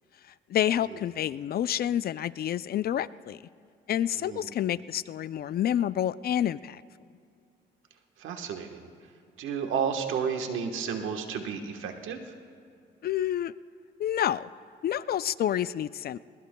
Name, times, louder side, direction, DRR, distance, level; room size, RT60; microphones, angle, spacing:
voice 1, 0.5-3.4 3.9-6.8 13.0-13.5 14.0-14.5 14.8-16.2, left 11 dB, 50° left, 17 dB, 0.4 m, -28 dB
voice 2, 4.2-4.5 8.2-8.9 9.4-12.2, right 7 dB, 85° right, 5 dB, 1.3 m, -32 dB
21.5 x 21.0 x 2.2 m, 2.4 s
cardioid pair, 90°, 20 cm